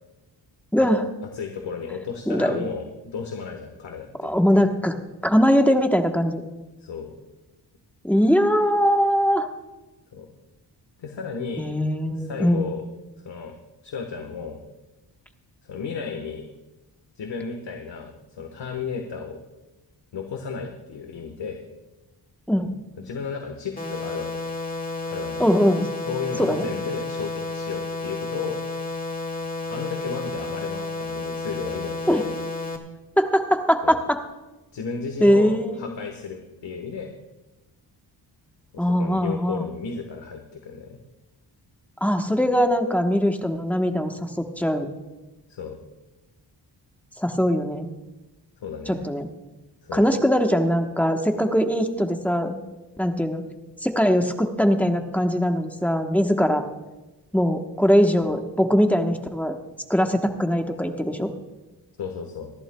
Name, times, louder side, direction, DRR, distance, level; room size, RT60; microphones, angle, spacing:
voice 1, 0.7-1.1 2.3-2.6 4.2-5.0 5.2-6.4 8.0-9.5 11.6-12.7 22.5-22.7 25.4-25.9 26.4-26.6 32.1-32.2 33.2-34.2 35.2-35.9 38.8-39.7 42.0-44.9 47.2-47.9 48.9-49.3 49.9-52.6 53.0-53.4 53.8-56.6 57.3-59.6 59.9-61.3, equal, 5° left, 4 dB, 1.1 m, -21 dB
voice 2, 1.3-4.4 6.8-7.1 10.1-10.3 11.0-11.7 12.2-12.8 13.2-13.5 13.8-14.6 15.7-16.4 17.2-19.4 20.1-21.6 23.0-24.5 25.0-25.5 26.1-28.6 29.7-32.3 33.8-34.0 34.7-37.1 38.7-41.0 45.5-45.8 48.6-49.0 49.8-50.1 62.0-62.5, left 5 dB, 80° left, 3 dB, 1.4 m, -34 dB
sound 1, 23.8-32.8, left 2 dB, 20° left, 1.7 m, -31 dB
26.5 x 11.5 x 2.3 m, 1.1 s
wide cardioid pair, 100°, 43 cm